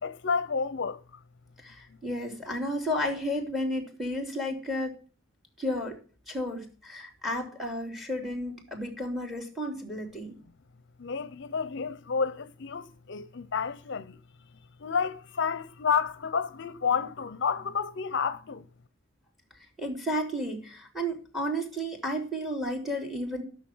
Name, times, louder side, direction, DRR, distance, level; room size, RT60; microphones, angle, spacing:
voice 1, 0.0-1.0 11.0-14.2 14.8-18.6, left 6 dB, 60° left, 0.6 m, -30 dB
voice 2, 1.6-5.0 5.6-6.0 6.3-10.3 19.8-23.4, equal, ahead, 3.3 m, -32 dB
13.0 x 6.6 x 6.1 m
head